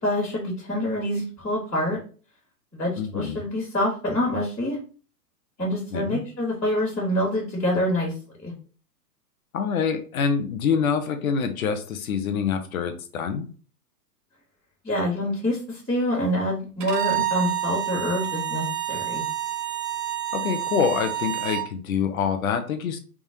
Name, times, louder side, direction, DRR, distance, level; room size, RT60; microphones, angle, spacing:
voice 1, 0.0-2.0 2.7-4.8 5.6-8.1 8.4-8.5 14.8-19.2, left 1 dB, 5° left, -22 dB, 0.4 m, -26 dB
voice 2, 3.0-3.4 5.7-6.2 9.5-13.5 20.3-23.0, left 6 dB, 60° left, 8 dB, 0.8 m, -26 dB
Bowed string instrument, 16.8-21.7, right 13 dB, 75° right, 0.9 m, -28 dB
3.6 x 3.3 x 2.7 m, 0.38 s
hypercardioid pair, 170°, 48 cm